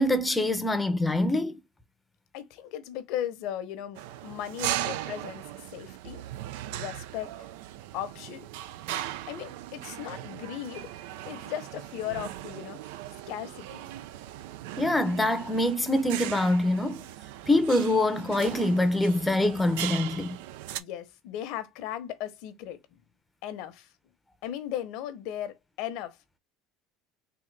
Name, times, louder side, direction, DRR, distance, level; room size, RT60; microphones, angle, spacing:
voice 1, 0.0-1.6 14.8-17.0 17.5-20.3, left 1 dB, 10° left, 0.7 m, -25 dB
voice 2, 2.3-6.2 6.7-7.3 7.9-8.5 9.3-10.9 11.3-12.8 13.3-13.9 20.8-23.0 23.4-23.9 24.4-26.2, left 11 dB, 70° left, 0.8 m, -37 dB
sound 1, 3.9-20.8, right 13 dB, 85° right, 0.4 m, -38 dB
3.8 x 2.7 x 3.2 m
cardioid pair, 130°, 0 cm